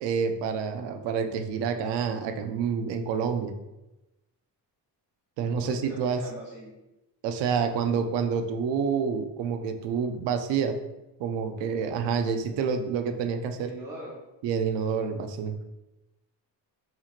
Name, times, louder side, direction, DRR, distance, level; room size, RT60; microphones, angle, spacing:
voice 1, 0.0-3.5 5.4-6.2 7.2-10.8 11.2-13.7 14.4-15.5, right 6 dB, 85° right, 7 dB, 0.5 m, -28 dB
voice 2, 5.5-6.8 13.6-14.2, right 1 dB, 5° right, -8 dB, 0.5 m, -41 dB
4.2 x 2.9 x 2.4 m, 0.98 s
cardioid pair, 175°, 41 cm